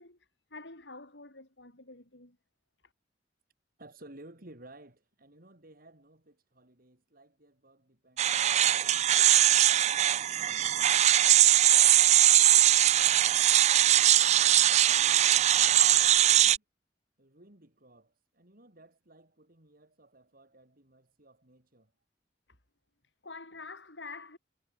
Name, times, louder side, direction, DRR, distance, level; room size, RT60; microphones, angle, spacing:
voice 1, 0.0-2.4 2.8-2.9 22.5-22.6 23.2-24.4, left 3 dB, 85° left, 6.7 m, -47 dB
voice 2, 3.8-10.9 11.5-13.2 13.8-15.3 15.6-15.8 16.1-16.6 17.2-21.9, right 1 dB, 55° right, 4.2 m, -57 dB
sound 1, 8.2-16.6, right 12 dB, 40° right, 0.4 m, -21 dB
head